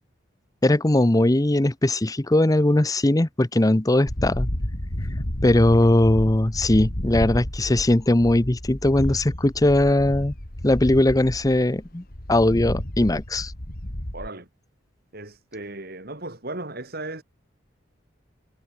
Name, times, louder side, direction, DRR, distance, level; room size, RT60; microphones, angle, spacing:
voice 1, 0.6-4.5 5.4-10.3 10.6-13.5, left 1 dB, 20° left, 0.7 m, -20 dB
sound 1, 4.1-14.3, left 1 dB, 50° left, 3.2 m, -31 dB
voice 2, 14.1-14.5 15.1-17.2, right 2 dB, 50° right, 4.2 m, -36 dB
head